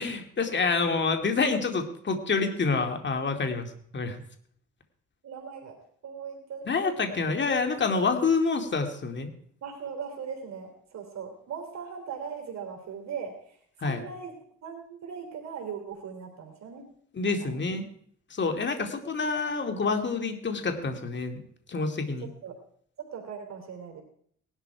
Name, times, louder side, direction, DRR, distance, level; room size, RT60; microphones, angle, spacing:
voice 1, 0.0-4.2 6.7-9.3 13.8-14.0 17.1-17.9 18.3-22.3, left 4 dB, 35° left, 6 dB, 2.4 m, -27 dB
voice 2, 5.2-5.8 6.0-7.3 9.6-14.3 14.6-16.9 17.2-17.5 22.2-22.6 23.0-24.0, right 6 dB, 60° right, 4 dB, 3.3 m, -39 dB
18.5 x 12.0 x 4.6 m, 0.62 s
cardioid pair, 90°, 30 cm